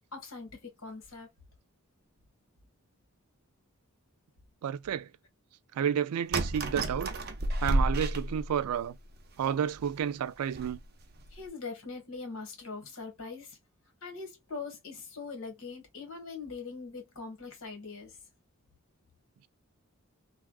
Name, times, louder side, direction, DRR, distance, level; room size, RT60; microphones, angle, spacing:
voice 1, 0.1-1.3 11.3-13.6 14.0-18.2, left 4 dB, 65° left, 1.6 m, -42 dB
voice 2, 4.6-5.1 5.8-7.2 7.6-8.9 9.4-10.8, right 8 dB, 90° right, 0.3 m, -31 dB
sound 1, 6.3-8.9 9.4-9.5 9.8-9.9 10.5-10.8 11.2-11.4, right 1 dB, 45° right, 0.6 m, -31 dB
3.3 x 2.3 x 2.3 m
head